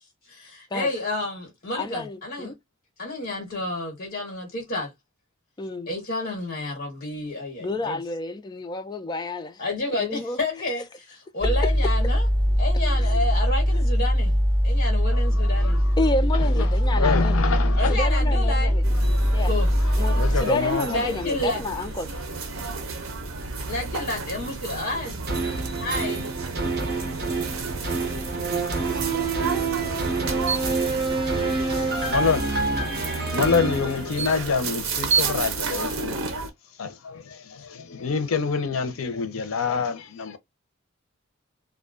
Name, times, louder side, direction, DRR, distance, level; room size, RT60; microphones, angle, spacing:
voice 1, 0.3-2.5 3.0-4.9 5.9-8.0 9.6-12.3 12.6-15.8 17.8-18.8 19.4-19.7 20.9-21.6 23.7-25.2 25.8-26.3, left 2 dB, 50° left, 1.1 m, -30 dB
voice 2, 1.7-2.5 5.6-5.9 7.6-9.6 9.9-10.4 11.4-11.5 13.0-13.1 16.0-17.4 17.9-18.8 19.3-19.5 20.0-22.1, left 2 dB, 20° left, 0.3 m, -29 dB
sound 1, 11.4-20.4, equal, 20° right, 0.8 m, -21 dB
voice 3, 15.1-15.8 16.3-18.0 19.0-19.4 20.1-20.9 31.6-32.5 32.8-36.3 36.8-40.4, left 5 dB, 80° left, 0.6 m, -27 dB
sound 2, 18.8-36.5, right 4 dB, 75° right, 0.6 m, -31 dB
sound 3, 25.3-34.7 35.1-35.2, right 3 dB, 50° right, 1.0 m, -27 dB
2.4 x 2.1 x 2.3 m
head